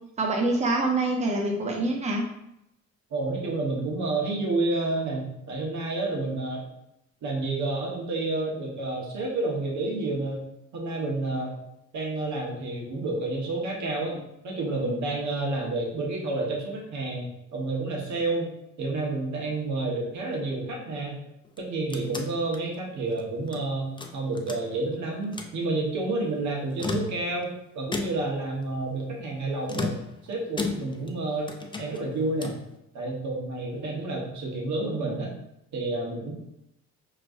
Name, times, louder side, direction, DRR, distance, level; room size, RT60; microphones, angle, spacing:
voice 1, 0.2-2.3, right 2 dB, 20° right, 0 dB, 0.8 m, -25 dB
voice 2, 3.1-6.6 7.2-10.4 10.7-11.6 11.9-21.2 21.6-31.5 31.8-32.5 32.9-35.3 35.7-36.3, right 2 dB, 70° right, -1 dB, 1.3 m, -30 dB
sound 1, 21.4-23.6 24.0-24.9 25.2-25.6 26.6-27.5 27.9-28.4 29.7-31.2 31.5-32.7, left 3 dB, 15° left, 0.5 m, -35 dB
5.9 x 3.2 x 2.6 m, 0.81 s
cardioid pair, 90°, 30 cm